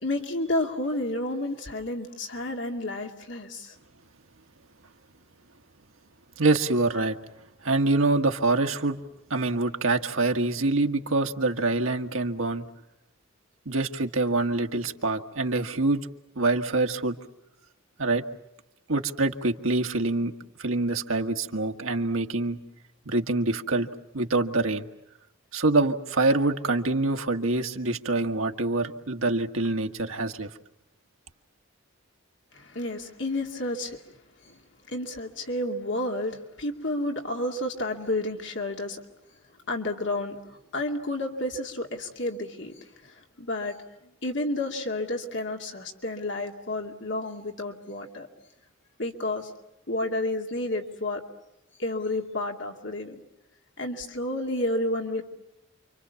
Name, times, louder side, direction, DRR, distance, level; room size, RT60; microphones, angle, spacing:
voice 1, 0.0-3.7 32.5-34.0 34.4-34.6 34.9-39.0 39.7-42.8 43.0-43.8 44.2-48.3 49.0-49.5 49.9-51.2 51.8-53.2 53.8-55.2, left 1 dB, 60° left, 3 dB, 2.5 m, -31 dB
voice 2, 6.4-7.2 7.6-9.0 9.3-12.6 13.6-16.0 16.3-17.2 18.0-18.2 18.9-20.3 20.6-22.6 23.0-23.9 24.1-24.9 25.5-30.5, right 2 dB, 85° right, 5 dB, 1.6 m, -25 dB
29.0 x 25.0 x 7.1 m, 0.89 s
head